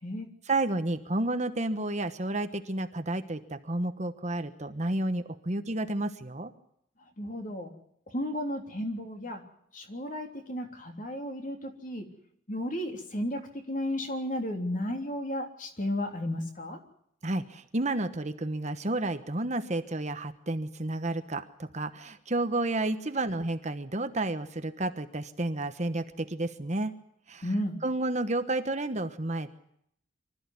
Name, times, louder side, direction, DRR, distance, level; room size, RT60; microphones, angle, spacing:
voice 1, 0.5-6.5 17.2-26.9 27.3-27.5 27.8-29.5, right 2 dB, 35° right, 9 dB, 1.1 m, -31 dB
voice 2, 7.2-7.7 8.1-9.4 9.7-12.1 12.5-16.8 27.4-27.8, left 1 dB, 40° left, 4 dB, 3.3 m, -33 dB
25.0 x 14.0 x 9.6 m, 0.71 s
head